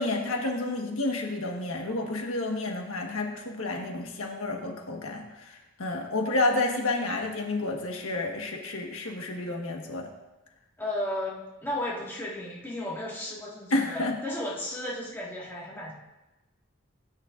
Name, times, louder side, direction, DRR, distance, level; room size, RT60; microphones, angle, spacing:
voice 1, 0.0-10.1 13.7-14.2, left 2 dB, 80° left, 2 dB, 1.4 m, -30 dB
voice 2, 10.8-15.9, left 1 dB, 10° left, -5 dB, 1.8 m, -34 dB
16.0 x 9.7 x 2.6 m, 1.0 s
head